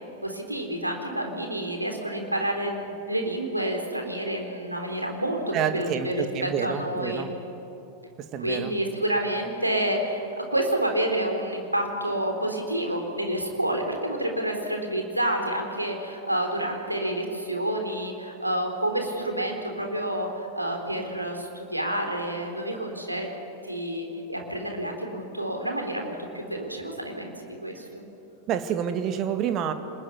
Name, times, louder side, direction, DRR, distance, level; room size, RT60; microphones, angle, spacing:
voice 1, 0.2-6.2 6.4-7.3 8.4-10.2 10.5-23.3 23.6-27.8, right 1 dB, 85° right, 3 dB, 3.9 m, -29 dB
voice 2, 5.5-7.3 8.2-8.7 28.5-29.7, right 8 dB, 35° right, 8 dB, 2.1 m, -28 dB
27.0 x 20.5 x 9.8 m, 2.9 s
figure-of-eight pair, 90°, 0 cm